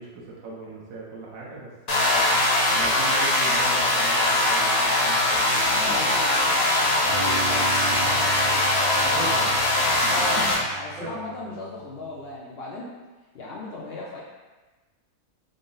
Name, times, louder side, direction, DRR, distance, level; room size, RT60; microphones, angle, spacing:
voice 1, 0.0-2.4 2.7-6.1 7.9-8.2 8.9-9.5 9.8-9.9 10.4-10.5 10.9-11.1, right 2 dB, 65° right, -4 dB, 1.0 m, -38 dB
sound 1, 1.9-10.5, left 1 dB, 50° left, 0.8 m, -21 dB
voice 2, 5.5-9.5 10.1-12.9 13.3-14.2, left 2 dB, 75° left, -5 dB, 0.5 m, -37 dB
sound 2, 7.1-12.3, right 7 dB, 85° right, 1.3 m, -38 dB
3.8 x 2.0 x 3.8 m, 1.2 s
omnidirectional pair, 1.6 m